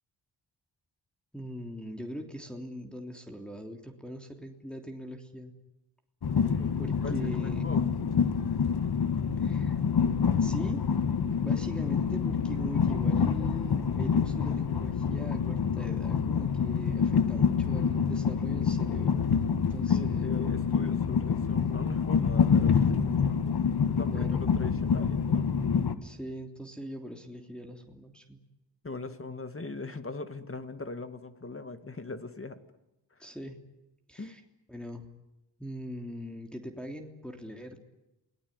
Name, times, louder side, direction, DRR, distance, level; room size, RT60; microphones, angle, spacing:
voice 1, 1.3-5.5 6.8-7.8 9.4-9.8 10.4-10.8 11.4-20.4 24.0-24.5 26.0-28.4 33.2-33.6 34.1-34.4 34.7-35.1 35.6-37.8, equal, ahead, 1 dB, 3.2 m, -41 dB
Train, 6.2-26.0, left 6 dB, 60° left, 1.8 m, -27 dB
voice 2, 6.5-7.9 19.9-25.5 28.8-32.6 34.2-34.3, left 3 dB, 30° left, 10 dB, 2.2 m, -40 dB
27.5 x 19.0 x 9.7 m, 0.98 s
cardioid pair, 70°, 43 cm